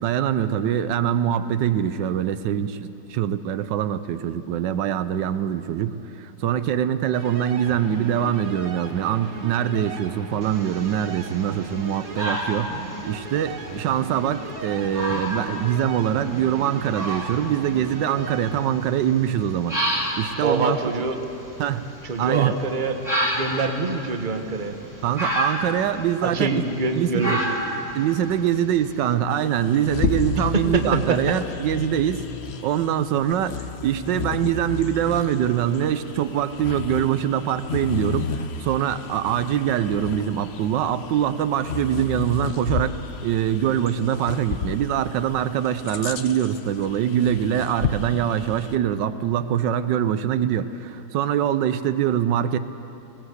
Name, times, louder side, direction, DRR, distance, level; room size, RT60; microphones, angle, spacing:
voice 1, 0.0-20.8 21.6-21.9 22.2-22.5 25.0-26.6 26.9-27.4 27.9-32.3 32.6-52.6, right 10 dB, 85° right, 12 dB, 1.3 m, -24 dB
sound 1, 7.1-18.6, right 4 dB, 55° right, 1.9 m, -37 dB
sound 2, 10.4-29.1, equal, 10° right, 2.6 m, -32 dB
voice 2, 20.4-21.2 22.0-23.0 23.3-24.8 26.2-27.6 30.5-31.3, right 3 dB, 30° right, 5 dB, 1.2 m, -25 dB
Bird vocalization bird call bird song, 29.3-48.8, left 6 dB, 55° left, 0.7 m, -32 dB
19.5 x 17.0 x 8.1 m, 2.9 s
omnidirectional pair, 1.9 m